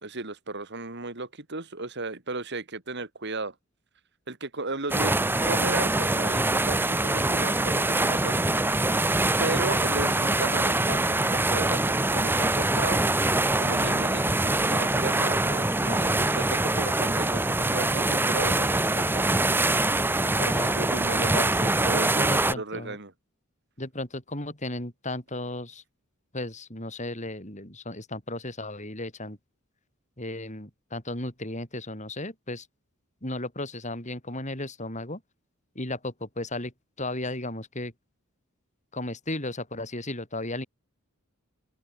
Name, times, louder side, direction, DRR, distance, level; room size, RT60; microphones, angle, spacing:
voice 1, 0.0-3.5 4.3-8.4 9.4-13.0 13.6-19.2 20.4-23.1, right 3 dB, 50° right, 2.7 m, -35 dB
sound 1, 4.9-22.5, right 2 dB, 10° right, 0.9 m, -24 dB
voice 2, 22.3-23.0 23.8-25.8 26.3-29.4 30.2-32.7 33.2-35.2 35.8-36.7 37.0-37.9 38.9-40.7, left 2 dB, 35° left, 7.0 m, -35 dB
open air
head